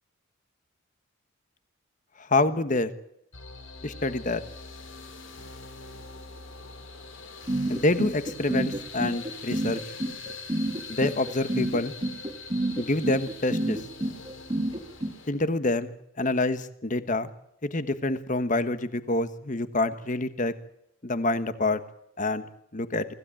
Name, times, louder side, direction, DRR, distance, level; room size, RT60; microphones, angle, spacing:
voice 1, 2.3-2.9 3.8-4.4 7.7-9.8 10.9-11.9 12.8-13.8 15.3-17.3 17.6-20.5 21.0-21.8 22.2-22.4 22.7-23.1, left 2 dB, 35° left, 12 dB, 1.3 m, -27 dB
sound 1, 3.3-15.3, left 4 dB, 60° left, 3.2 m, -43 dB
sound 2, 7.5-15.1, right 1 dB, 25° right, 1.8 m, -28 dB
25.0 x 15.5 x 9.0 m, 0.80 s
head